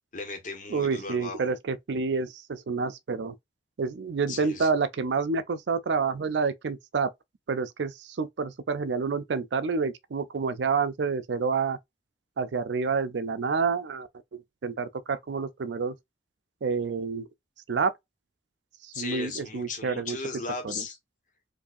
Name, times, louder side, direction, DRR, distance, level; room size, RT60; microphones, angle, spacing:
voice 1, 0.1-1.5 4.3-4.7 18.9-21.0, left 4 dB, 45° left, 1.4 m, -36 dB
voice 2, 0.7-3.4 3.8-7.1 7.5-11.8 12.4-14.1 14.6-15.9 16.6-17.3 17.7-17.9 18.8-20.2 20.6-20.7, right 5 dB, 80° right, 0.5 m, -28 dB
4.8 x 2.6 x 2.6 m
head